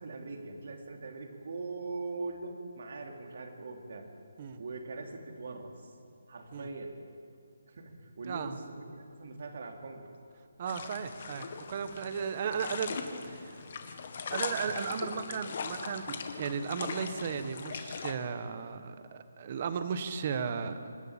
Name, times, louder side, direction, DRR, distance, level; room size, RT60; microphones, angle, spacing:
voice 1, 0.0-4.1 4.6-6.0 6.3-7.0 7.7-10.1, right 3 dB, 55° right, 3 dB, 3.0 m, -41 dB
voice 2, 8.3-8.6 10.6-13.7 14.3-20.8, right 6 dB, 30° right, 10 dB, 1.3 m, -35 dB
sound 1, 10.7-18.1, left 5 dB, 40° left, 1.8 m, -40 dB
27.0 x 12.5 x 8.8 m, 2.4 s
hypercardioid pair, 170°, 0 cm